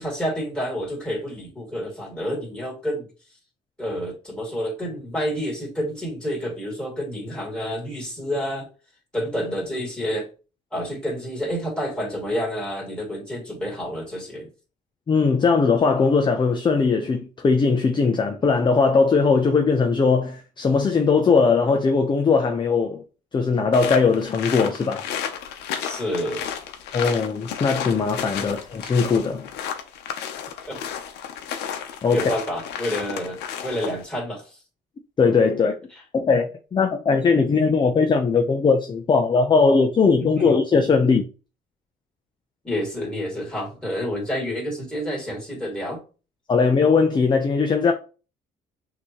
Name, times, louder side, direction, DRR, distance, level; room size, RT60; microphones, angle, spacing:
voice 1, 0.0-3.1 3.8-8.7 9.1-10.3 10.7-14.5 25.8-26.5 28.4-28.5 30.7-30.8 32.1-34.6 40.2-40.6 42.6-46.0, equal, 5° left, 2.5 m, -29 dB
voice 2, 15.1-23.0 23.3-25.0 26.9-29.5 32.0-32.3 35.2-35.7 36.1-41.2 46.5-47.9, left 4 dB, 25° left, 0.6 m, -19 dB
sound 1, 23.7-34.0, left 8 dB, 80° left, 0.8 m, -32 dB
5.8 x 2.9 x 3.0 m
cardioid pair, 110°, 17 cm